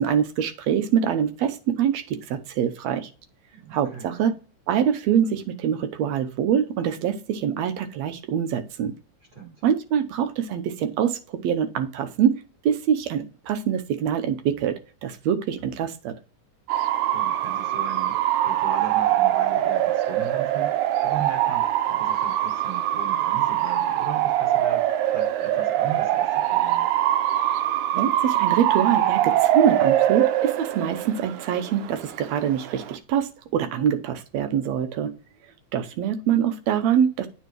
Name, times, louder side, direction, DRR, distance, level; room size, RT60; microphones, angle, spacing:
voice 1, 0.0-3.1 3.7-4.3 4.7-8.9 9.6-16.2 27.9-35.1 35.7-37.3, right 8 dB, 70° right, 9 dB, 2.0 m, -24 dB
voice 2, 3.5-4.3 9.3-9.6 17.1-18.2 18.4-20.7 21.0-24.9 25.1-26.9, right 5 dB, 40° right, -1 dB, 3.5 m, -38 dB
Bark / Motor vehicle (road) / Siren, 16.7-33.0, right 12 dB, 90° right, 2.1 m, -23 dB
8.7 x 4.6 x 4.6 m, 0.36 s
omnidirectional pair, 3.3 m